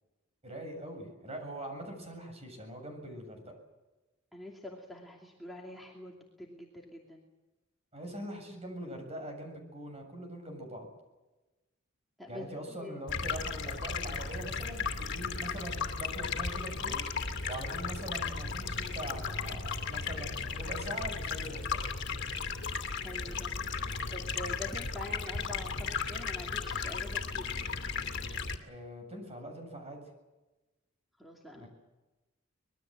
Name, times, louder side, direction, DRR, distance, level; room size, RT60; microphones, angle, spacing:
voice 1, 0.4-3.5 7.9-10.9 12.3-17.0 17.5-21.8 28.6-30.0 31.5-31.7, right 1 dB, 30° right, 4 dB, 7.3 m, -42 dB
voice 2, 4.3-7.2 12.2-13.0 23.0-23.5 24.1-27.6 31.2-31.7, left 1 dB, ahead, -1 dB, 2.7 m, -45 dB
Stream, 13.1-28.6, left 5 dB, 60° left, 2.6 m, -35 dB
25.5 x 21.5 x 7.8 m, 1.1 s
head